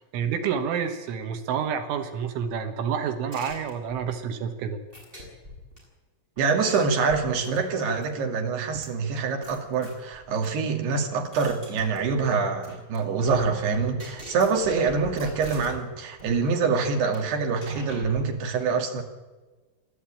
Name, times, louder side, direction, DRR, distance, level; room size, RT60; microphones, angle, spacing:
voice 1, 0.0-4.8, right 7 dB, 75° right, 6 dB, 3.7 m, -29 dB
sound 1, 3.3-4.1 4.9-5.8 6.4-8.2 8.8-8.9 9.4-10.5 11.0-12.3 12.6-13.0 13.2-15.9 16.2-16.4 16.7-17.2 17.6-18.2, equal, 10° right, 6.8 m, -41 dB
voice 2, 6.4-19.0, right 5 dB, 60° right, 3 dB, 4.0 m, -25 dB
28.0 x 12.5 x 8.9 m, 1.3 s
omnidirectional pair, 5.9 m